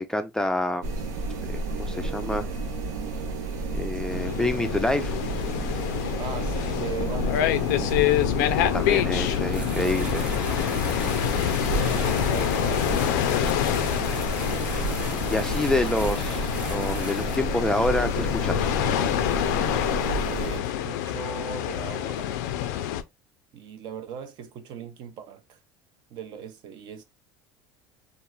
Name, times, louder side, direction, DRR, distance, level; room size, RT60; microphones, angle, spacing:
voice 1, 0.1-0.9 1.5-2.5 3.7-5.1 8.5-10.2 15.3-18.7, left 1 dB, 5° left, 0.3 m, -27 dB
sound 1, 0.8-20.6, right 3 dB, 90° right, 0.7 m, -32 dB
sound 2, 4.1-23.0, left 12 dB, 80° left, 0.3 m, -27 dB
voice 2, 6.2-7.7 11.7-13.2 20.3-22.5 23.5-25.6 26.1-27.0, right 7 dB, 55° right, 0.6 m, -38 dB
sound 3, 9.0-17.4, equal, 10° right, 1.1 m, -38 dB
3.0 x 2.4 x 2.2 m
supercardioid pair, 95°, 9 cm